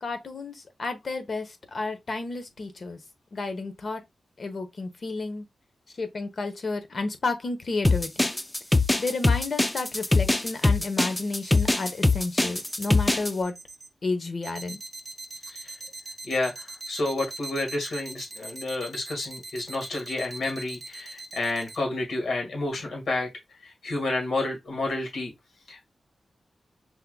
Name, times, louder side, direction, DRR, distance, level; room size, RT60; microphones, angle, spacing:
voice 1, 0.0-3.0 3.3-4.0 4.4-5.5 6.0-8.3 9.0-13.5 14.0-14.8, left 3 dB, 45° left, 0.9 m, -31 dB
sound 1, 7.8-13.3, left 2 dB, 10° left, 0.3 m, -22 dB
sound 2, 11.4-11.9 12.4-12.9 13.4-13.9 14.4-21.8, right 2 dB, 30° right, 0.8 m, -40 dB
voice 2, 16.2-23.3 23.6-25.3 25.7-25.8, left 2 dB, 75° left, 2.0 m, -30 dB
5.5 x 3.5 x 2.2 m
wide cardioid pair, 165°, 0 cm